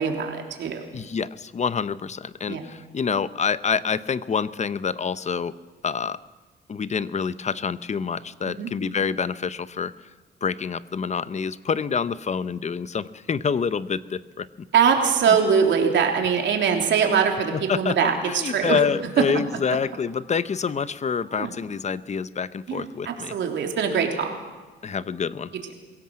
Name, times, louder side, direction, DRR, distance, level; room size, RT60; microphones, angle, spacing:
voice 1, 0.0-0.8 2.4-2.6 8.6-8.7 14.7-18.8 21.3-21.5 22.7-24.3, right 6 dB, 65° right, 3 dB, 3.4 m, -22 dB
voice 2, 0.9-5.5 5.8-6.2 6.7-9.9 10.4-14.7 15.3-15.4 17.5-23.3 24.8-25.5, left 6 dB, 35° left, 15 dB, 0.8 m, -27 dB
22.0 x 16.5 x 7.7 m, 1.3 s
cardioid pair, 90°, 20 cm